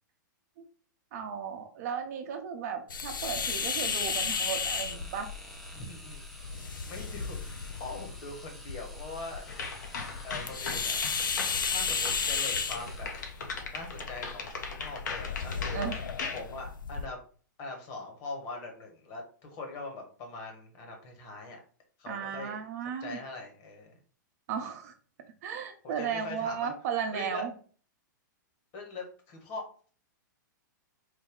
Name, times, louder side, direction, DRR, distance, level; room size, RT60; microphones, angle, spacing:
voice 1, 1.1-5.3 15.7-16.0 22.1-23.2 24.5-24.9 25.4-27.5, right 7 dB, 50° right, 5 dB, 0.7 m, -35 dB
sound 1, 2.9-17.1, left 5 dB, 85° left, 0.4 m, -34 dB
sound 2, 3.3-13.4, equal, ahead, 0.7 m, -50 dB
voice 2, 5.7-6.2 6.8-9.4 10.2-11.0 11.7-13.1 13.7-15.8 16.3-17.2 17.6-19.2 19.5-21.6 22.0-23.9 25.8-26.7 27.1-27.5 28.7-29.6, left 3 dB, 40° left, 2 dB, 1.2 m, -42 dB
sound 3, 9.5-16.4, left 4 dB, 65° left, 0.8 m, -39 dB
3.3 x 2.2 x 3.6 m, 0.43 s
hypercardioid pair, 115°, 10 cm